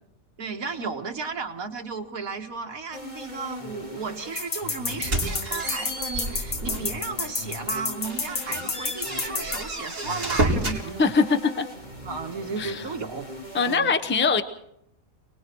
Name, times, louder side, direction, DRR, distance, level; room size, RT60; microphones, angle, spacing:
voice 1, 0.4-11.1 12.0-13.3 13.6-13.9, right 5 dB, 80° right, 4 dB, 2.1 m, -34 dB
sound 1, 2.9-13.8, left 2 dB, 30° left, 3.3 m, -41 dB
sound 2, 4.4-9.6, left 4 dB, 50° left, 1.7 m, -30 dB
sound 3, 4.9-7.0 7.4-7.6 8.0-10.8, right 1 dB, 65° right, 4.2 m, -30 dB
voice 2, 11.0-11.6 12.6-12.8 13.5-14.4, left 4 dB, 10° left, 9 dB, 0.8 m, -22 dB
29.0 x 20.0 x 4.6 m, 0.74 s
omnidirectional pair, 1.5 m